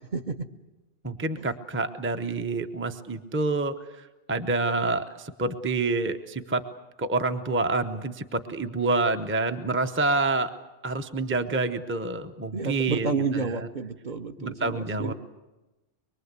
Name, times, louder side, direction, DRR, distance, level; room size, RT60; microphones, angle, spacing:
voice 1, 0.1-0.5 1.4-1.5 12.5-15.1, right 4 dB, 45° right, 5 dB, 1.1 m, -30 dB
voice 2, 1.0-3.8 4.3-6.6 7.0-10.5 10.8-13.1 13.3-13.7 14.4-15.1, right 3 dB, 10° right, 8 dB, 0.7 m, -27 dB
24.0 x 22.0 x 8.2 m, 1.1 s
omnidirectional pair, 1.2 m